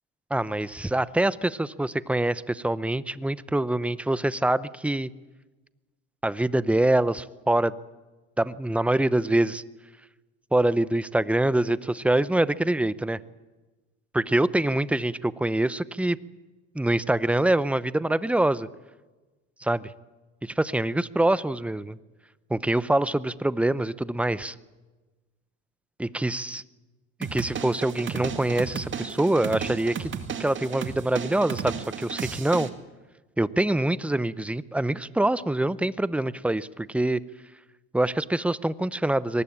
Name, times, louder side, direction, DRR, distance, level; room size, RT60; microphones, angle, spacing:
voice 1, 0.3-5.1 6.2-7.8 8.4-9.6 10.5-13.2 14.1-16.2 16.7-18.7 19.6-19.9 20.4-22.0 22.5-24.6 26.0-26.6 27.2-30.1 30.4-32.7 33.4-37.2 37.9-39.4, right 1 dB, 5° right, 17 dB, 0.8 m, -25 dB
sound 1, 27.2-32.7, right 7 dB, 35° right, 2.3 m, -34 dB
23.5 x 19.5 x 8.8 m, 1.2 s
supercardioid pair, 100°, 33 cm